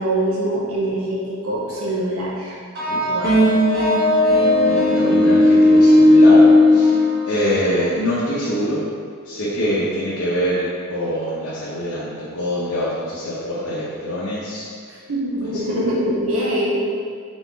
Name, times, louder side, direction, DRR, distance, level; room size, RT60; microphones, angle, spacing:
voice 1, 0.0-2.5 3.1-3.4 15.1-16.8, right 1 dB, 75° right, -5 dB, 1.1 m, -23 dB
sound 1, 2.8-7.9, left 1 dB, 45° right, 1.7 m, -14 dB
voice 2, 4.7-7.0 7.3-8.8 9.2-14.7 15.4-15.5, equal, 55° left, -10 dB, 1.3 m, -24 dB
7.0 x 4.2 x 4.1 m, 2.1 s
head